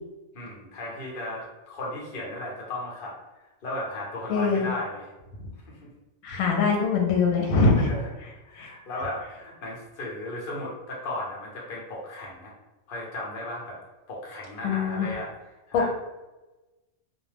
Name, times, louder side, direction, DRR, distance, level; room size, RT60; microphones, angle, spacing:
voice 1, 0.3-3.2 3.6-5.1 5.7-5.9 7.7-8.0 8.4-12.5 12.9-13.8 14.1-15.3 15.7-15.9, left 1 dB, 45° left, -3 dB, 0.9 m, -35 dB
voice 2, 4.3-4.7 6.2-7.9 8.6-8.7 14.6-15.1 15.7-15.9, left 4 dB, 80° left, 1 dB, 1.0 m, -23 dB
2.5 x 2.1 x 3.2 m, 1.1 s
omnidirectional pair, 1.5 m